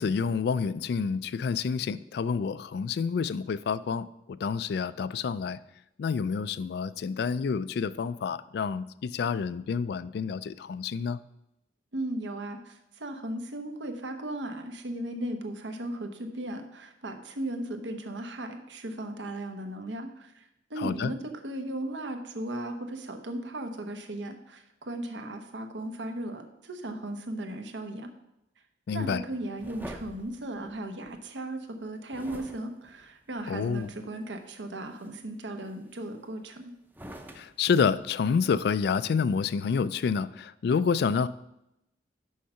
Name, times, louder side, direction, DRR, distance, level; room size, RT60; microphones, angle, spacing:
voice 1, 0.0-4.1 4.4-5.6 6.0-11.2 20.8-21.1 28.9-29.2 33.5-33.9 37.4-41.3, left 6 dB, 60° left, 0.3 m, -28 dB
voice 2, 11.9-28.1 28.9-36.7, right 1 dB, 85° right, 1.0 m, -36 dB
sound 1, 29.6-31.2 32.1-34.2 34.7-35.1 35.6-36.4 36.9-38.8, right 1 dB, 10° right, 0.6 m, -47 dB
6.4 x 5.6 x 5.6 m
head